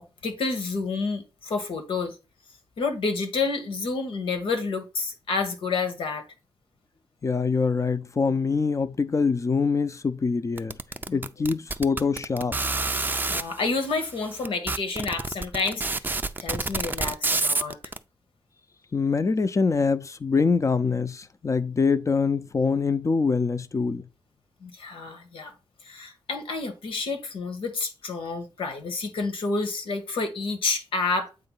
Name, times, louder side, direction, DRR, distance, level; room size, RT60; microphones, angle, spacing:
voice 1, 0.2-2.2 2.8-6.2 11.1-11.2 13.3-16.1 16.4-17.8 24.6-25.5 25.8-31.3, left 4 dB, 90° left, 1.4 m, -29 dB
voice 2, 7.2-10.7 11.1-12.6 18.9-24.0, left 4 dB, 35° left, 0.6 m, -24 dB
sound 1, 10.6-13.4 14.1-14.2 14.4-18.0, right 3 dB, 20° right, 0.4 m, -27 dB
7.9 x 2.7 x 5.5 m
cardioid pair, 80°, 9 cm